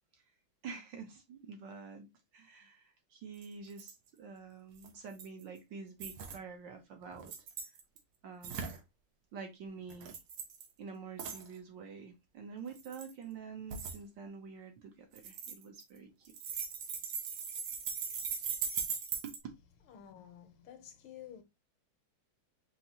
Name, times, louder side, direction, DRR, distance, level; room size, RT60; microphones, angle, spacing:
voice 1, 0.6-2.1 2.3-7.3 8.2-8.7 9.3-10.2 10.8-16.1 19.2-19.3, right 5 dB, 65° right, 1.4 m, -47 dB
sound 1, 3.4-3.5 3.7-3.9 4.8-5.4 6.0-6.4 7.1-8.0 8.4-8.8 9.9-10.7 11.2-11.5 12.7-13.1 13.7-14.0 15.2-16.0 16.2-19.4, right 6 dB, 85° right, 1.8 m, -39 dB
voice 2, 19.9-21.4, left 9 dB, 75° left, 1.5 m, -51 dB
5.6 x 2.6 x 2.7 m
omnidirectional pair, 2.4 m